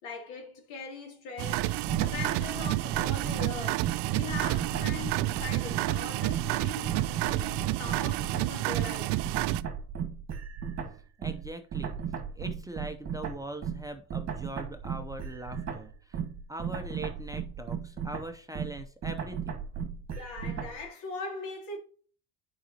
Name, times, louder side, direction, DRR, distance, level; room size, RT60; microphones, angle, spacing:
voice 1, 0.0-1.7 2.1-9.2 20.1-21.8, left 4 dB, 85° left, 3.0 m, -41 dB
sound 1, 1.4-6.6 6.8-20.8, right 7 dB, 35° right, 1.6 m, -36 dB
sound 2, 1.4-9.6, right 17 dB, 60° right, 0.5 m, -30 dB
voice 2, 11.2-12.0 12.4-16.2 16.5-19.6, right 1 dB, 10° right, 0.6 m, -41 dB
9.8 x 5.0 x 2.9 m
cardioid pair, 130°, 47 cm